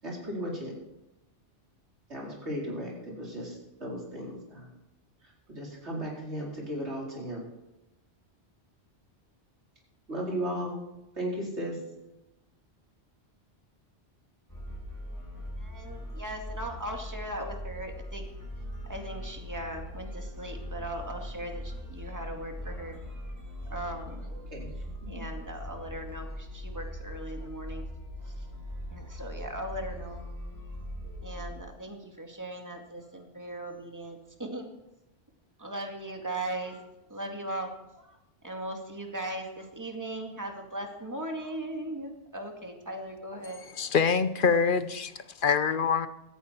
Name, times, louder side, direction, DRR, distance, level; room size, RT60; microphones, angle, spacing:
voice 1, 0.0-0.7 2.1-4.7 5.2-7.5 10.1-10.8 11.1-11.8 24.2-24.7 25.1-25.2, equal, 80° right, -3 dB, 4.8 m, -36 dB
sound 1, 14.5-31.6, equal, 15° left, 3.9 m, -40 dB
voice 2, 15.6-18.2 18.8-23.3 23.6-24.3 25.1-27.9 28.2-28.3 28.9-30.3 30.6-30.7 31.0-34.7 35.6-38.2 38.4-43.6, right 1 dB, 15° right, 2 dB, 2.2 m, -39 dB
voice 3, 43.7-46.1, left 5 dB, 55° left, 12 dB, 1.0 m, -25 dB
17.0 x 14.0 x 4.5 m, 0.91 s
omnidirectional pair, 1.1 m